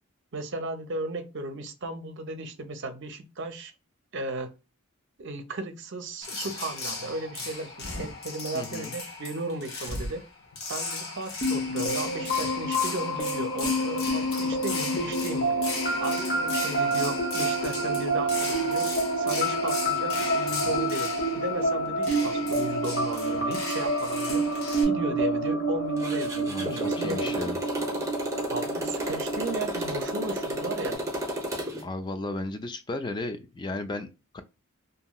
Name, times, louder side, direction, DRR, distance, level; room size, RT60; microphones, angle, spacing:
voice 1, 0.3-3.7 4.1-4.5 5.2-10.2 10.7-15.5 16.0-18.9 19.2-24.4 24.8-27.5 28.5-31.0, right 2 dB, 55° right, 0.6 m, -35 dB
sound 1, 6.2-24.8, left 3 dB, 70° left, 1.0 m, -36 dB
voice 2, 8.5-8.9 26.5-27.6 31.8-34.4, left 2 dB, 20° left, 0.3 m, -34 dB
sound 2, 11.4-30.9, right 1 dB, 45° left, 0.9 m, -28 dB
Motorcycle, 26.0-31.8, equal, 15° right, 0.8 m, -32 dB
2.9 x 2.7 x 2.2 m
head